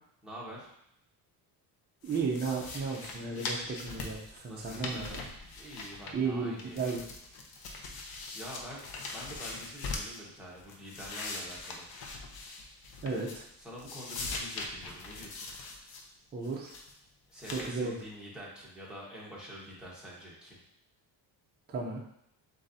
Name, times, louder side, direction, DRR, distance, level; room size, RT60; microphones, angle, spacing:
voice 1, 0.2-0.7 4.4-5.1 5.5-7.1 7.9-8.0 8.3-8.8 9.1-11.9 13.6-15.5 17.3-20.6, equal, ahead, -6 dB, 1.2 m, -46 dB
sound 1, 2.0-6.3 6.6-10.2 10.6-13.5 13.8-16.0 16.4-16.9 17.4-17.7, left 3 dB, 55° left, 0.8 m, -41 dB
voice 2, 2.0-5.2 6.1-7.0 13.0-13.4 16.3-16.7 17.5-17.9 21.7-22.0, right 4 dB, 25° right, -1 dB, 0.5 m, -34 dB
7.3 x 2.7 x 2.7 m, 0.74 s
cardioid pair, 150°, 44 cm